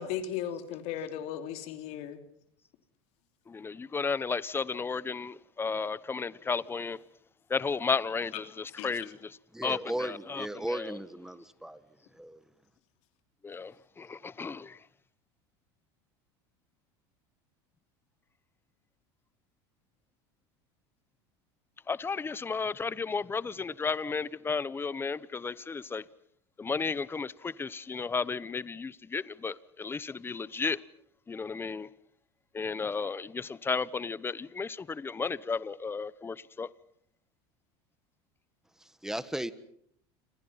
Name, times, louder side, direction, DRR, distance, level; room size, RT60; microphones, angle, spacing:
voice 1, 0.0-2.2 8.8-8.9, left 9 dB, 60° left, 3.3 m, -36 dB
voice 2, 3.5-7.0 7.5-11.0 13.4-14.8 21.9-26.0 26.6-30.8 31.3-31.9 32.5-36.7, left 5 dB, 15° left, 0.9 m, -33 dB
voice 3, 9.5-11.8 12.1-12.4 38.8-39.5, right 1 dB, 5° right, 1.6 m, -36 dB
29.0 x 26.5 x 5.8 m
supercardioid pair, 110°, 13 cm